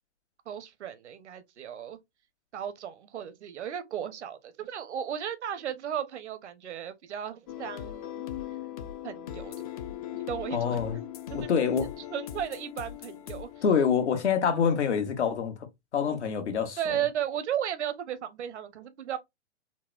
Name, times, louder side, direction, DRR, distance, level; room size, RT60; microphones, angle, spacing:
voice 1, 0.5-2.0 2.5-8.2 9.0-9.5 9.9-11.5 12.1-13.5 16.8-19.2, right 9 dB, 80° right, 0.8 m, -35 dB
sound 1, 7.5-14.8, left 11 dB, 35° left, 0.4 m, -40 dB
voice 2, 10.5-11.0 11.3-11.9 13.6-15.5 15.9-16.8, left 7 dB, 75° left, 1.1 m, -26 dB
3.9 x 2.1 x 2.3 m
hypercardioid pair, 130°, 34 cm